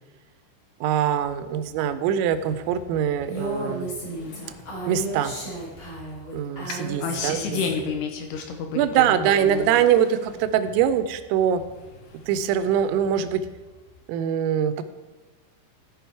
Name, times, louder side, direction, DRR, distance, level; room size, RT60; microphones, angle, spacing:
voice 1, 0.8-3.9 4.9-5.4 6.3-7.7 8.7-11.6 12.3-13.4 14.1-14.8, right 9 dB, 85° right, 11 dB, 3.3 m, -23 dB
Motorcycle, 1.2-14.0, left 2 dB, 65° left, 3.4 m, -49 dB
Female speech woman speaking, 3.3-7.9, right 2 dB, 30° left, 2.8 m, -33 dB
voice 2, 6.7-9.7, left 6 dB, 80° left, 4 dB, 2.3 m, -30 dB
14.5 x 5.4 x 4.5 m, 1.2 s
omnidirectional pair, 5.8 m